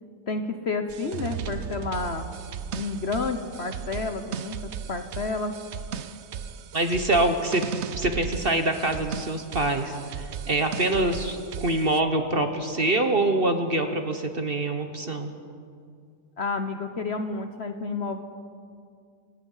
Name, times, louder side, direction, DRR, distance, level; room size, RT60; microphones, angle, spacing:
voice 1, 0.3-2.3 2.7-5.5 16.4-18.2, left 3 dB, 45° left, 7 dB, 1.2 m, -30 dB
sound 1, 0.9-12.0, right 7 dB, 55° right, 0.8 m, -36 dB
voice 2, 6.7-7.6 7.9-15.3, right 2 dB, 40° right, 7 dB, 1.3 m, -25 dB
29.0 x 17.5 x 5.6 m, 2.2 s
omnidirectional pair, 1.7 m